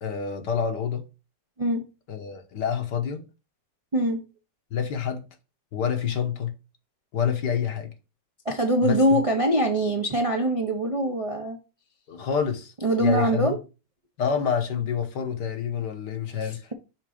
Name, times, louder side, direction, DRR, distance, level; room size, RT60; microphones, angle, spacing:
voice 1, 0.0-1.0 2.1-3.2 4.7-5.2 5.7-6.5 7.1-7.9 8.8-9.2 12.1-12.7 13.0-13.6 14.2-16.6, left 7 dB, 70° left, 1.7 m, -27 dB
voice 2, 8.4-11.6 12.8-13.6, right 1 dB, 35° right, 0.5 m, -23 dB
6.5 x 3.8 x 5.0 m
omnidirectional pair, 1.9 m